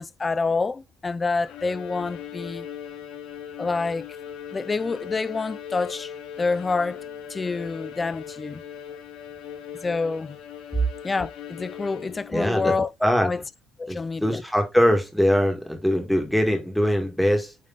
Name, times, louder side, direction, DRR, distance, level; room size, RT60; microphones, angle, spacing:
voice 1, 0.0-2.7 3.6-4.1 4.5-6.1 6.4-7.0 7.3-8.6 9.7-10.4 11.0-12.9 13.2-13.4 13.8-14.4, left 4 dB, 20° left, 0.5 m, -27 dB
Bowed string instrument, 1.4-12.5, left 9 dB, 75° left, 3.3 m, -39 dB
voice 2, 12.3-12.7 13.0-13.3 13.9-17.5, equal, ahead, 1.7 m, -22 dB
9.3 x 3.5 x 3.9 m
cardioid pair, 150°, 0 cm